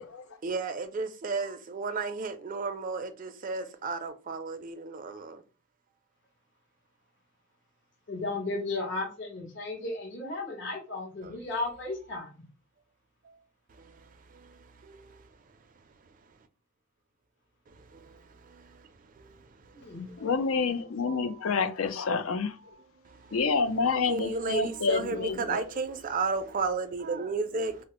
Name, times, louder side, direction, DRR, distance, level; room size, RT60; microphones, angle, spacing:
voice 1, 0.4-5.4 11.2-11.4 13.2-13.3 13.7-15.3 17.7-20.0 21.1-21.2 23.0-23.4 24.1-27.8, right 4 dB, 40° right, 0.4 m, -34 dB
voice 2, 8.1-12.3 19.7-20.1, left 2 dB, 55° left, 1.0 m, -34 dB
voice 3, 20.2-22.7 23.3-25.6, left 4 dB, 75° left, 0.5 m, -28 dB
4.0 x 2.0 x 2.9 m
head